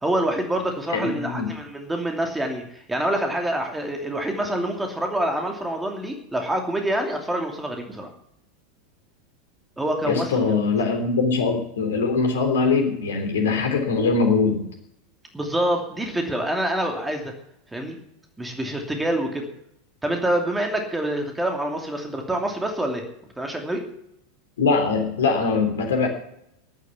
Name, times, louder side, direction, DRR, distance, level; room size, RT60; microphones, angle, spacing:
voice 1, 0.0-8.1 9.8-10.3 15.3-17.3 17.7-18.0 18.4-19.5 20.0-23.0 23.4-23.8, right 1 dB, 10° right, 3 dB, 2.7 m, -26 dB
voice 2, 0.9-1.5 10.1-14.6 24.6-26.1, left 4 dB, 65° left, 4 dB, 3.3 m, -22 dB
13.5 x 11.0 x 7.2 m, 0.78 s
figure-of-eight pair, 85°, 0 cm